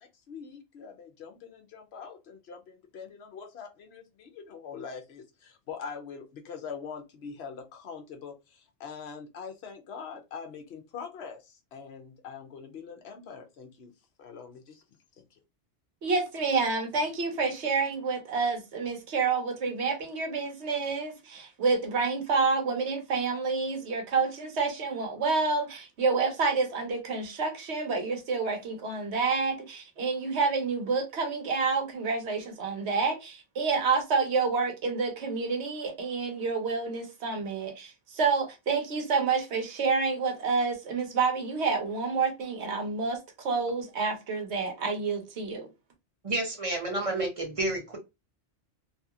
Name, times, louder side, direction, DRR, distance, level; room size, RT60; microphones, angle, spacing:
voice 1, 0.0-13.9 14.2-14.8, left 6 dB, 70° left, 0.9 m, -43 dB
voice 2, 16.0-45.7, right 4 dB, 70° right, 1.1 m, -28 dB
voice 3, 46.2-48.0, right 2 dB, 35° right, 0.8 m, -30 dB
2.8 x 2.7 x 2.3 m
omnidirectional pair, 1.2 m